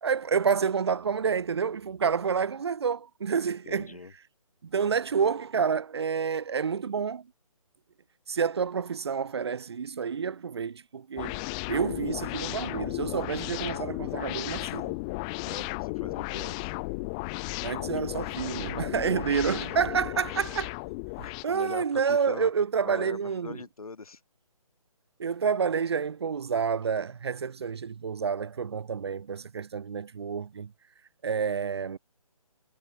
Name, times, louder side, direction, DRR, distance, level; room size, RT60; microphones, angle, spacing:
voice 1, 0.0-3.9 4.6-7.2 8.3-11.4 11.7-15.0 17.6-20.7 21.2-23.6 25.2-30.7 31.2-32.0, right 6 dB, 45° right, 0.8 m, -29 dB
voice 2, 3.7-4.1 15.5-16.7 17.9-18.1 19.3-20.5 21.2-22.5 22.8-24.2, left 4 dB, 75° left, 5.4 m, -42 dB
sound 1, 11.2-21.4, left 30 dB, 10° left, 0.8 m, -34 dB
hypercardioid pair, 165°, 19 cm